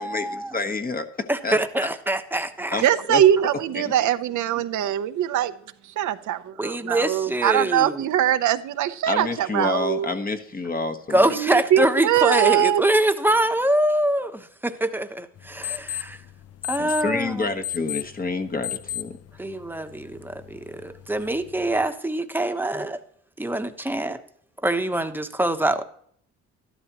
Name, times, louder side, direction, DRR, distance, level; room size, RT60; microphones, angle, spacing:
voice 1, 0.0-0.5 1.3-2.8 6.6-8.1 11.1-16.2 16.7-17.5 19.4-23.0 23.4-24.2 24.6-25.8, right 1 dB, 5° right, 1.0 m, -24 dB
voice 2, 0.5-1.6 2.7-3.2 3.7-3.9 9.1-11.3 16.8-19.2, left 3 dB, 30° left, 1.2 m, -28 dB
voice 3, 2.8-5.5 5.8-10.1 11.3-12.8, right 11 dB, 75° right, 0.8 m, -22 dB
sound 1, 15.4-21.9, left 13 dB, 55° left, 0.6 m, -36 dB
12.5 x 12.0 x 3.0 m
cardioid pair, 90°, 30 cm